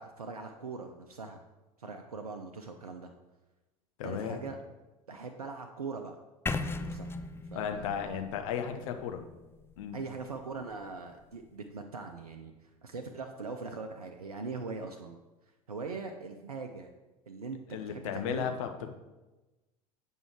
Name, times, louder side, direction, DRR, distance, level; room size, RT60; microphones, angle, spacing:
voice 1, 0.0-1.4 1.8-3.1 4.0-4.6 5.1-6.2 6.8-7.1 7.5-8.2 9.9-15.2 15.7-16.9 17.3-18.6, right 4 dB, 85° right, 4 dB, 0.6 m, -41 dB
voice 2, 4.0-4.4 7.5-9.2 9.8-10.0 17.7-18.7, left 8 dB, 60° left, 6 dB, 0.9 m, -34 dB
sound 1, 6.5-10.4, left 3 dB, 15° left, 0.5 m, -38 dB
8.1 x 5.4 x 4.6 m, 1.1 s
figure-of-eight pair, 75°, 19 cm